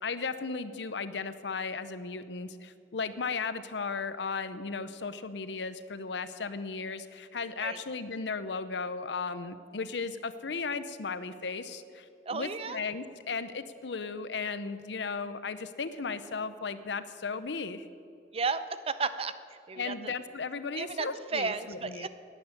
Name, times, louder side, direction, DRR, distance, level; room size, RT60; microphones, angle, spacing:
voice 1, 0.0-17.9 19.8-22.1, left 4 dB, 80° left, 13 dB, 0.7 m, -36 dB
voice 2, 12.3-12.8 18.3-19.3 19.7-19.9 20.7-22.1, right 4 dB, 35° right, 12 dB, 0.6 m, -33 dB
12.0 x 9.4 x 9.5 m, 2.5 s
head